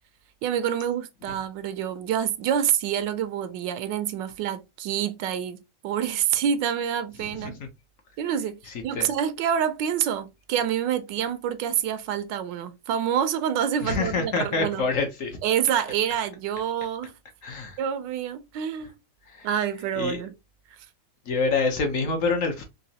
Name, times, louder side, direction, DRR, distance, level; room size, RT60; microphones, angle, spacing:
voice 1, 0.4-7.6 8.2-14.9 15.4-17.1 17.8-18.9 19.4-20.3, right 9 dB, 80° right, 1.3 m, -27 dB
voice 2, 13.8-15.4 17.4-17.8 19.3-19.5 19.9-20.2 21.3-22.6, left 4 dB, 60° left, 0.9 m, -26 dB
4.0 x 2.7 x 2.7 m
omnidirectional pair, 2.0 m